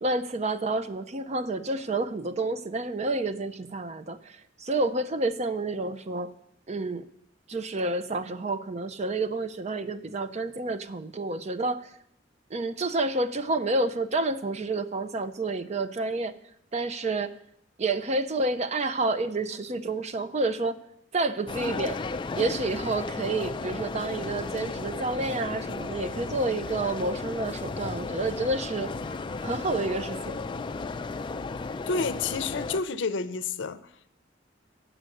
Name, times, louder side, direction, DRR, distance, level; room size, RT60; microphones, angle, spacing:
voice 1, 0.0-6.3 6.7-7.0 7.5-11.9 12.5-16.3 16.7-17.4 17.8-20.8 21.1-22.0 22.3-28.9 29.4-30.4, right 2 dB, 35° right, 0.5 m, -29 dB
sound 1, 21.5-32.8, left 3 dB, 25° left, 0.3 m, -34 dB
sound 2, 26.3-31.6, right 1 dB, 10° right, 4.9 m, -52 dB
voice 2, 31.9-33.8, left 4 dB, 70° left, 0.6 m, -29 dB
7.9 x 6.2 x 7.7 m
head